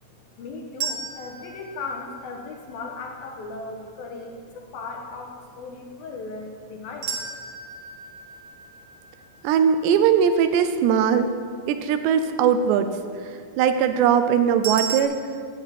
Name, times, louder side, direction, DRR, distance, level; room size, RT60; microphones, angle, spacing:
voice 1, 0.4-7.1, left 3 dB, 65° left, 2 dB, 2.6 m, -37 dB
sound 1, 0.8-2.9 7.0-10.1 14.6-15.0, right 6 dB, 55° right, 1.6 m, -34 dB
voice 2, 9.4-11.3 11.7-13.0 13.2-15.2, right 8 dB, 80° right, 9 dB, 2.8 m, -20 dB
14.0 x 7.8 x 9.8 m, 2.1 s
omnidirectional pair, 5.2 m